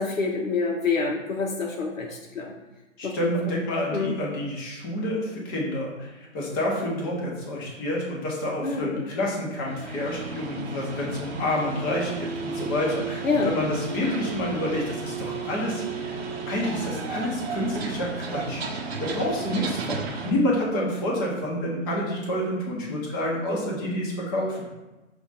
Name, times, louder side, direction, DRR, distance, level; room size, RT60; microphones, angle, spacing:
voice 1, 0.0-2.5 3.0-3.6 3.9-4.1 8.6-9.0 13.2-13.6, left 4 dB, 90° left, 0 dB, 0.7 m, -27 dB
voice 2, 3.0-16.2 16.4-18.7 19.0-24.7, left 1 dB, 15° left, -3 dB, 0.7 m, -28 dB
sound 1, 9.7-20.3, right 4 dB, 50° right, 0.7 m, -33 dB
5.0 x 2.4 x 4.0 m, 1.1 s
figure-of-eight pair, 135°, 39 cm